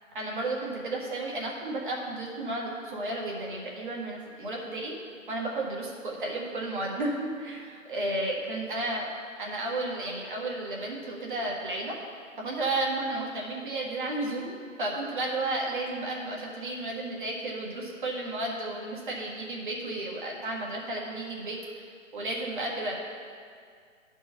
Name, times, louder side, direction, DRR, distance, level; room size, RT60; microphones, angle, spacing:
voice 1, 0.1-4.9 5.3-9.1 9.4-12.0 12.4-21.8 22.1-23.0, right 2 dB, 40° right, -2 dB, 1.5 m, -33 dB
10.5 x 4.7 x 5.6 m, 2.1 s
hypercardioid pair, 170°, 40 cm